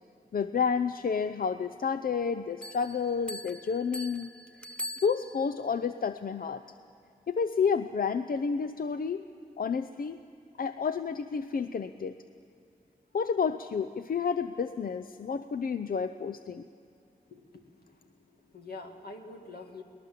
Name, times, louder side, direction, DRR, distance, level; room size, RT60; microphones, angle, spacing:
voice 1, 0.3-4.3 5.0-6.6 7.3-9.2 9.6-10.2 10.6-12.2 13.1-16.6, left 6 dB, 70° left, 11 dB, 0.6 m, -30 dB
Bell, 2.6-5.7, left 1 dB, 5° left, 0.6 m, -42 dB
voice 2, 17.3-19.8, left 3 dB, 90° left, 3 dB, 2.0 m, -46 dB
22.5 x 19.5 x 7.6 m, 2.6 s
wide cardioid pair, 65°, 16 cm